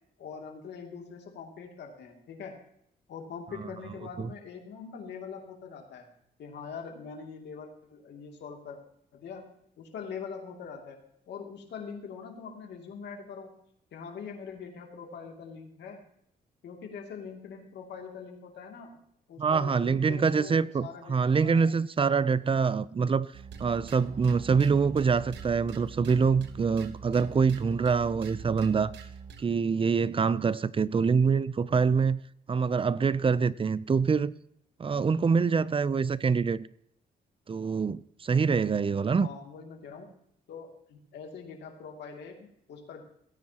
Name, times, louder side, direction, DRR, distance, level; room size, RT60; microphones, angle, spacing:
voice 1, 0.2-2.6 3.1-6.1 6.4-8.8 9.1-13.5 13.9-16.1 16.6-19.0 19.3-21.7 39.2-40.1 40.5-43.0, left 6 dB, 80° left, 2.6 m, -43 dB
voice 2, 19.4-23.3 23.6-28.9 29.4-32.2 32.5-34.3 34.8-36.7 37.5-39.3, right 5 dB, 30° right, 0.5 m, -25 dB
sound 1, 23.3-29.5, right 6 dB, 90° right, 1.1 m, -44 dB
17.5 x 9.6 x 2.9 m
cardioid pair, 85°, 18 cm